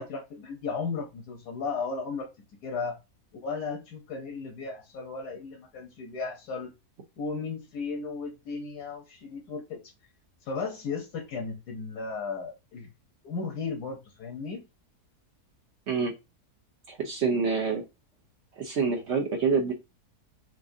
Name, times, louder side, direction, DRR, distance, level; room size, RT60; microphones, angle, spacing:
voice 1, 0.0-2.3 2.6-3.0 3.3-6.7 7.2-9.8 10.4-12.9 13.2-14.6, left 4 dB, 80° left, 1.5 m, -35 dB
voice 2, 16.9-17.8 18.6-19.7, right 5 dB, 55° right, 0.8 m, -27 dB
6.0 x 2.5 x 2.6 m
omnidirectional pair, 1.6 m